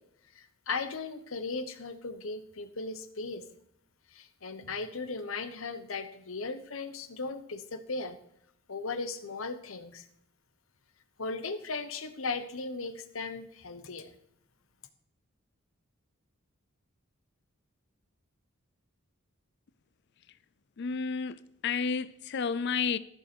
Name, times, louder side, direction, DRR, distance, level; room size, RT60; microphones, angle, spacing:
voice 1, 0.3-3.4 4.1-8.2 8.7-10.1 11.2-14.2, left 3 dB, 70° left, 1.0 m, -37 dB
voice 2, 20.8-21.4 21.6-23.0, left 5 dB, 55° left, 0.5 m, -30 dB
14.5 x 6.8 x 4.5 m
head